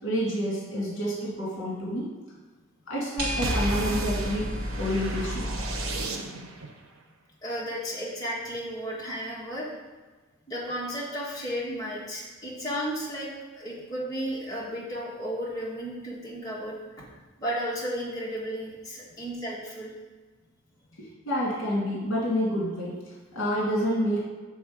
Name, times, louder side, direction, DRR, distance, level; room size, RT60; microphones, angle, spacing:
voice 1, 0.0-2.1 2.9-4.5 4.8-5.5 21.0-22.9 23.3-24.2, equal, 60° left, -6 dB, 2.0 m, -28 dB
sound 1, 3.2-6.1, equal, 40° right, 2.0 m, -32 dB
sound 2, 3.4-6.7, right 2 dB, 80° right, 0.8 m, -33 dB
voice 2, 7.4-9.7 10.5-17.0 17.4-19.9, equal, 15° left, -6 dB, 1.6 m, -33 dB
6.9 x 3.6 x 5.1 m, 1.3 s
head